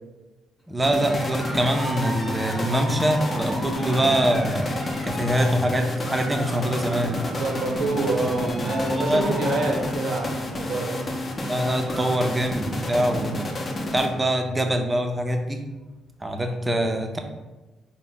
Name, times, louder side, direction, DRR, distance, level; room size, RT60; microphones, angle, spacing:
voice 1, 0.7-4.7 5.0-7.2 8.9-9.2 11.5-13.5 13.9-15.6 16.2-17.2, right 1 dB, 15° right, 5 dB, 0.5 m, -24 dB
sound 1, 0.8-14.5, left 1 dB, 35° left, 0.6 m, -30 dB
Cheering, 0.9-12.2 12.5-12.9 13.3-13.4 13.6-14.4, equal, 5° left, 0.9 m, -36 dB
voice 2, 7.3-11.0, right 2 dB, 80° right, 1 dB, 0.6 m, -27 dB
4.0 x 2.1 x 3.8 m, 1.1 s
cardioid pair, 90°, 0 cm